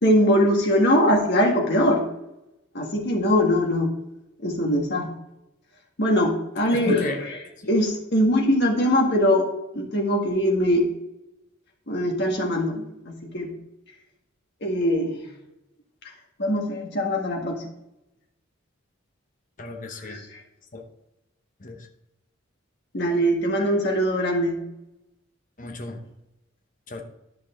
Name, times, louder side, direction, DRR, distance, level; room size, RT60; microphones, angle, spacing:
voice 1, 0.0-2.1 2.7-3.9 4.4-5.1 6.0-7.1 7.7-9.5 9.7-10.9 11.9-13.5 14.6-15.2 16.4-17.6 20.0-20.2 22.9-24.6, equal, 55° left, 1 dB, 1.9 m, -22 dB
voice 2, 6.7-7.3 7.6-7.7 19.6-20.2 20.7-20.8 21.6-21.9 25.6-26.0 26.9-27.0, left 3 dB, 40° left, 4 dB, 0.9 m, -33 dB
11.0 x 5.5 x 3.7 m, 0.89 s
head